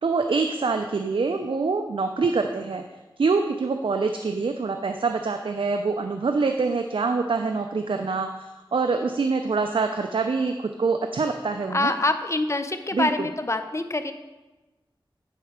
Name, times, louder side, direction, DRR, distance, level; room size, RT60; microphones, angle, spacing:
voice 1, 0.0-2.8 3.2-11.9 12.9-13.1, right 4 dB, 85° right, 6 dB, 0.4 m, -25 dB
voice 2, 11.7-14.1, left 2 dB, 35° left, 9 dB, 0.6 m, -25 dB
9.9 x 4.4 x 5.0 m, 1.1 s
wide cardioid pair, 60°, 9 cm